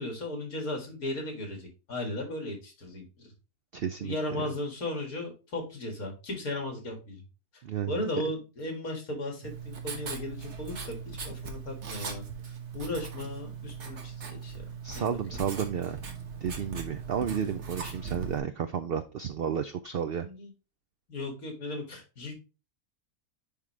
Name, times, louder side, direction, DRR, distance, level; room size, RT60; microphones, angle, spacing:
voice 1, 0.0-3.3 4.0-7.2 7.9-11.0 11.2-12.3 12.7-14.6 14.9-15.0 15.3-15.4 20.2-20.5 21.1-22.3, left 1 dB, 70° left, 2 dB, 2.5 m, -36 dB
voice 2, 3.7-4.1 7.6-7.9 14.8-16.0 16.4-20.3, right 8 dB, 85° right, 10 dB, 0.5 m, -32 dB
Writing, 9.4-18.4, right 5 dB, 50° right, 1.4 m, -39 dB
10.0 x 3.7 x 3.1 m, 0.30 s
omnidirectional pair, 1.6 m